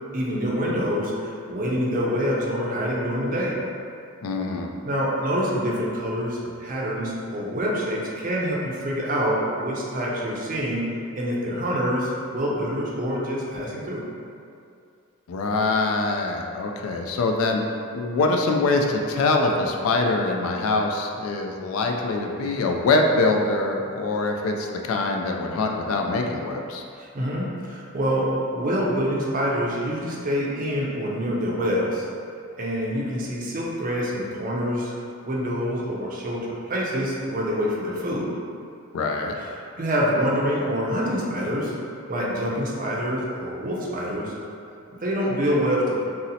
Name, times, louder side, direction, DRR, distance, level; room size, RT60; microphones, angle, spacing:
voice 1, 0.1-3.5 4.8-10.8 11.2-14.0 27.0-32.1 32.6-34.9 35.2-36.4 36.7-38.2 39.4-41.7 42.1-44.3 45.0-46.0, equal, 40° right, -4 dB, 0.5 m, -26 dB
voice 2, 4.2-4.7 15.3-17.6 17.9-26.8 38.9-39.3, left 3 dB, 70° left, 2 dB, 0.3 m, -24 dB
2.7 x 2.0 x 3.9 m, 2.5 s
head